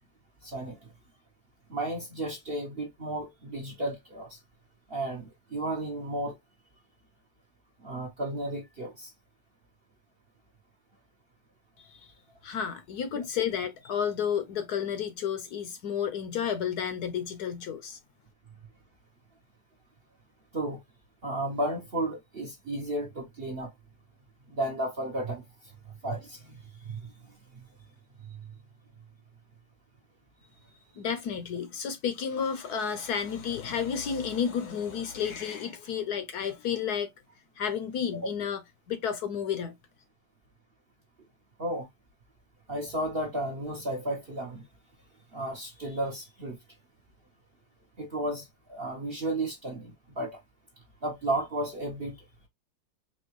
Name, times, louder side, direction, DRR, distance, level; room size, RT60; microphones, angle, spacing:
voice 1, 0.4-0.8 1.7-4.4 4.9-6.4 7.8-9.1 20.5-20.8 21.2-23.7 24.5-25.4 26.0-26.5 26.9-27.1 27.5-27.6 41.6-41.9 42.7-44.6 45.3-46.6 48.0-50.4 51.0-52.2, right 1 dB, 40° right, 0.9 m, -33 dB
voice 2, 11.8-12.1 12.4-18.0 31.0-37.1 37.6-38.6 38.9-39.7, left 7 dB, 65° left, 1.1 m, -31 dB
4.4 x 3.0 x 3.1 m
omnidirectional pair, 2.0 m